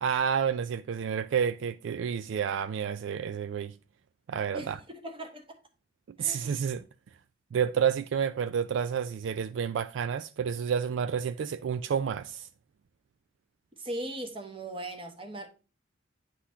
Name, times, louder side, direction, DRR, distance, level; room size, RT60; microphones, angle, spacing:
voice 1, 0.0-3.7 4.3-4.8 6.2-6.8 7.5-12.5, right 7 dB, 70° right, 0.3 m, -30 dB
voice 2, 4.5-5.4 6.2-6.5 13.8-15.5, right 1 dB, 30° right, 1.1 m, -39 dB
9.9 x 3.9 x 2.8 m
head